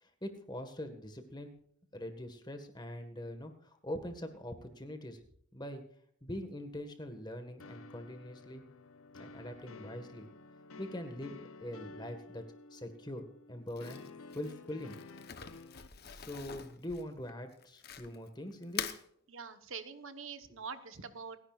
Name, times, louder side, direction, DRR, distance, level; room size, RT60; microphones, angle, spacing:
voice 1, 0.0-1.6 1.9-5.2 5.5-5.8 6.2-8.7 9.1-10.3 10.8-12.4 12.7-14.0 14.3-15.0 16.0-18.9, left 1 dB, 20° left, 7 dB, 1.6 m, -43 dB
sound 1, 7.6-15.9, left 3 dB, 85° left, 0.8 m, -52 dB
Crumpling crinkling, 13.7-18.3 18.6-19.0, left 8 dB, 45° left, 1.0 m, -44 dB
voice 2, 19.3-21.4, right 5 dB, 75° right, 9 dB, 1.2 m, -44 dB
28.5 x 10.5 x 2.5 m, 0.65 s
head